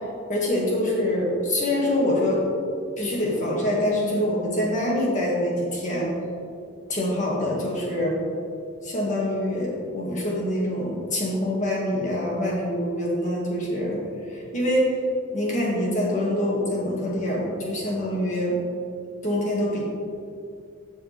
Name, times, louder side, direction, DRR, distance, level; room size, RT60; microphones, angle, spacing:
voice 1, 0.3-2.4 3.0-6.1 6.9-8.2 8.8-14.0 14.3-15.0 15.3-18.6 19.2-19.8, left 1 dB, 35° left, -4 dB, 2.2 m, -25 dB
12.5 x 7.1 x 3.5 m, 2.4 s
head